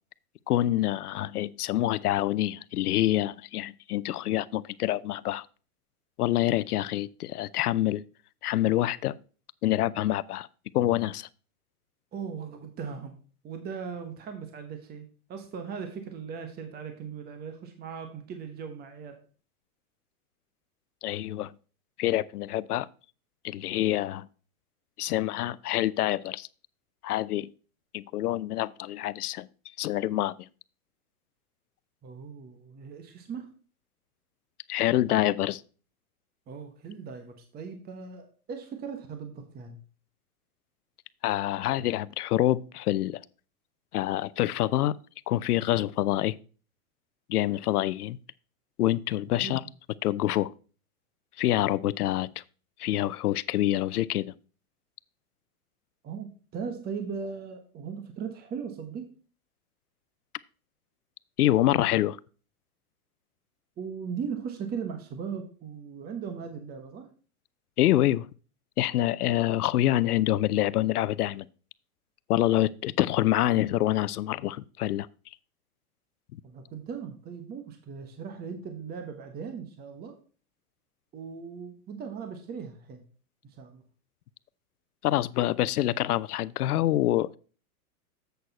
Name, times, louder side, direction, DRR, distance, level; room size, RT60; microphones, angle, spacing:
voice 1, 0.5-5.5 6.2-8.0 8.4-9.2 9.6-10.5 10.7-11.3 21.0-21.5 22.0-22.9 23.4-24.3 25.0-26.5 27.0-27.5 27.9-29.5 29.8-30.5 34.7-35.6 41.2-43.2 43.9-45.0 45.3-46.4 47.3-48.2 48.8-49.6 50.0-50.5 51.4-52.4 52.8-54.3 61.4-62.2 67.8-68.3 68.8-71.5 72.3-75.1 85.0-87.4, left 14 dB, 85° left, 0.6 m, -26 dB
voice 2, 12.1-13.2 13.4-19.2 32.0-33.5 36.5-39.8 49.4-49.7 56.0-59.1 63.8-67.1 76.4-80.1 81.1-83.0 83.6-83.8, right 6 dB, 20° right, 1.1 m, -38 dB
8.0 x 6.6 x 4.0 m
hypercardioid pair, 130°, 44 cm